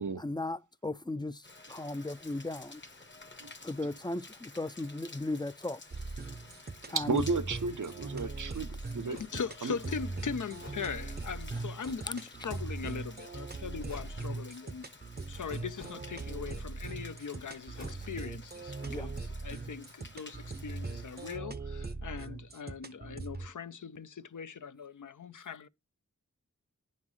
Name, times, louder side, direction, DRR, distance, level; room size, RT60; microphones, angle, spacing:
voice 1, 0.2-1.4 1.7-2.8 3.6-5.8 6.9-7.2 18.9-19.1, left 2 dB, 15° left, 0.4 m, -36 dB
Rain, 1.4-21.4, left 3 dB, 35° left, 0.9 m, -53 dB
sound 1, 5.9-23.5, right 3 dB, 30° right, 0.6 m, -40 dB
voice 2, 6.9-9.2 9.6-9.8, right 4 dB, 75° right, 0.7 m, -33 dB
sound 2, 8.1-8.2 9.1-9.4 10.6-10.9 11.8-12.1 13.9-14.3 15.7-16.1 17.7-18.0, left 2 dB, 60° left, 1.6 m, -48 dB
voice 3, 9.1-14.9 15.3-25.7, left 6 dB, 75° left, 0.5 m, -40 dB
9.5 x 5.7 x 3.1 m
wide cardioid pair, 45°, 31 cm